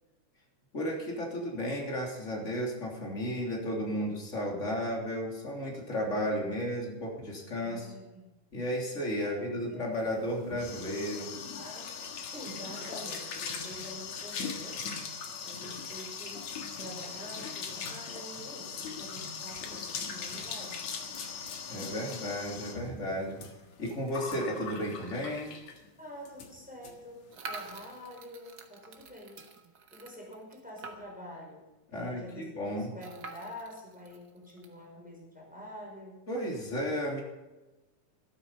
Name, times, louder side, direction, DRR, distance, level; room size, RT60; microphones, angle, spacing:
voice 1, 0.7-7.9 8.5-11.3 21.7-23.5 23.8-25.5 31.9-32.9 36.3-37.2, equal, 25° left, -2 dB, 3.4 m, -33 dB
voice 2, 7.6-8.3 9.2-9.9 11.1-14.8 15.4-16.5 16.8-20.8 26.0-29.4 29.9-36.2, equal, 5° right, -2 dB, 5.3 m, -47 dB
sound 1, 10.1-25.9 26.3-26.5 26.8-26.9 27.2-27.6, left 5 dB, 65° left, 2.8 m, -40 dB
sound 2, 27.3-31.3 31.7-31.8 32.0-32.1 33.0-34.7, right 4 dB, 50° right, 1.3 m, -46 dB
13.0 x 13.0 x 5.6 m, 1.1 s
omnidirectional pair, 3.4 m